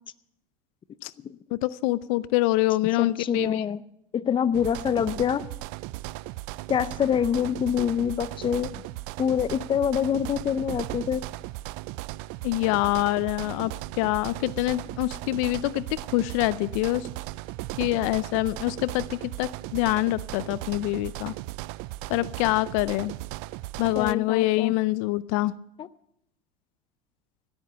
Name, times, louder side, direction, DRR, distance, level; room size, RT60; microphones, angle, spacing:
voice 1, 1.5-3.6 12.4-17.1 17.8-21.3 22.1-23.1 23.8-25.5, left 18 dB, 70° left, 19 dB, 0.5 m, -25 dB
voice 2, 3.0-3.8 4.1-5.4 6.7-8.8 9.2-11.2 13.6-13.7 24.0-24.8 25.8-25.9, left 8 dB, 30° left, 17 dB, 0.6 m, -26 dB
sound 1, 4.5-24.1, right 19 dB, 65° right, 0.4 m, -37 dB
16.5 x 8.9 x 6.7 m, 0.78 s
supercardioid pair, 95°, 18 cm